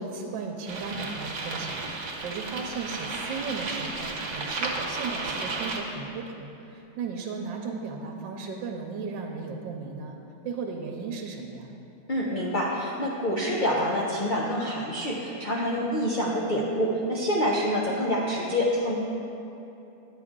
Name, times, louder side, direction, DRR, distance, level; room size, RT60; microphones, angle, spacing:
voice 1, 0.0-10.2 10.4-11.7, right 4 dB, 85° right, 2 dB, 1.4 m, -35 dB
sound 1, 0.7-5.8, right 3 dB, 60° right, 1.5 m, -33 dB
voice 2, 12.1-19.0, equal, 55° left, -4 dB, 0.5 m, -27 dB
9.3 x 8.3 x 3.7 m, 2.9 s
omnidirectional pair, 2.0 m